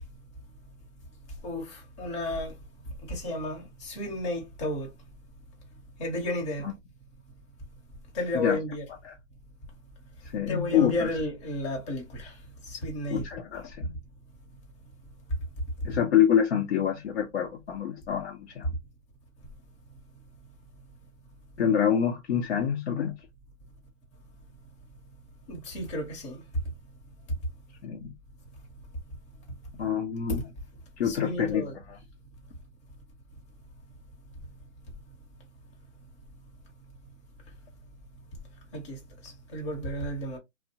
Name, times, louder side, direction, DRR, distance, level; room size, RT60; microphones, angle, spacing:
voice 1, 1.4-2.6 3.0-4.9 6.0-6.7 8.1-8.8 10.5-13.3 25.5-26.4 30.4-30.5 31.0-31.7 38.7-40.4, left 1 dB, 25° left, 0.8 m, -33 dB
voice 2, 10.2-11.1 13.1-13.9 15.8-18.7 21.6-23.1 27.8-28.1 29.7-30.4 31.0-32.0, left 9 dB, 60° left, 0.7 m, -26 dB
2.6 x 2.0 x 2.7 m
hypercardioid pair, 145°, 37 cm